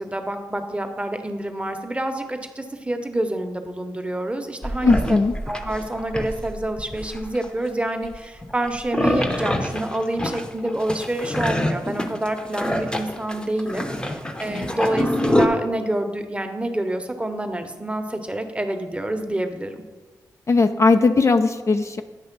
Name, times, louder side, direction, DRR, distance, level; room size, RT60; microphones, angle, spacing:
voice 1, 0.0-5.2 5.5-19.8, right 1 dB, 15° right, 6 dB, 0.8 m, -27 dB
sound 1, 4.6-7.5 8.1-15.5, left 1 dB, 15° left, 0.7 m, -25 dB
voice 2, 4.8-5.3 20.5-22.0, left 3 dB, 40° left, 8 dB, 0.4 m, -18 dB
8.9 x 3.1 x 5.9 m, 1.3 s
cardioid pair, 60°, 7 cm